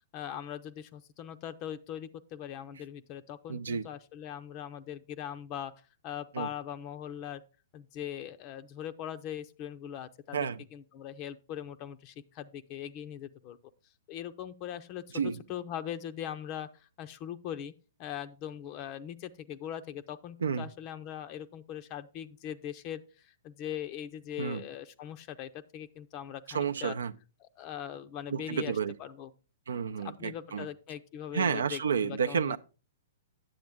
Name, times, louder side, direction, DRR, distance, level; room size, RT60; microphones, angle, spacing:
voice 1, 0.1-5.7 6.0-7.4 7.7-10.5 10.7-13.6 14.1-17.7 18.0-27.0 27.4-29.3 30.0-32.6, left 10 dB, 35° left, 0.5 m, -41 dB
voice 2, 3.5-3.9 6.3-6.5 10.3-10.6 15.1-15.4 20.4-20.7 24.4-24.6 26.5-27.1 28.3-28.9 29.7-30.7 31.3-32.6, right 6 dB, 70° right, 0.5 m, -31 dB
9.5 x 7.6 x 3.5 m
figure-of-eight pair, 110°, 0 cm